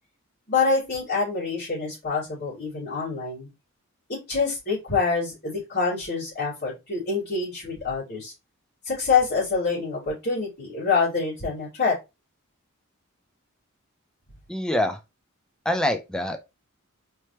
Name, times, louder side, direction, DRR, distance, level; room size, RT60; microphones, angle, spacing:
voice 1, 0.5-3.5 4.1-8.3 8.8-12.0, left 4 dB, 45° left, 2.9 m, -26 dB
voice 2, 14.5-15.0 15.7-16.4, left 1 dB, 5° left, 0.5 m, -25 dB
4.4 x 3.3 x 2.9 m
head